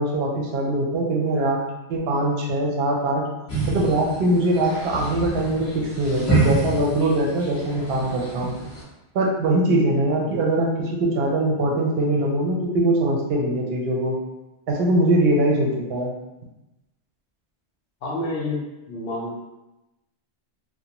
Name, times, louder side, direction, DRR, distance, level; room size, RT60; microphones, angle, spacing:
voice 1, 0.0-1.6 1.9-3.2 3.7-5.7 6.0-8.5 9.1-14.2 14.7-16.1, right 1 dB, 65° right, -1 dB, 0.7 m, -22 dB
sound 1, 3.5-8.8, right 2 dB, 20° left, 0.4 m, -27 dB
voice 2, 18.0-19.4, left 2 dB, 65° left, -2 dB, 0.7 m, -29 dB
2.5 x 2.0 x 2.8 m, 0.99 s
omnidirectional pair, 1.2 m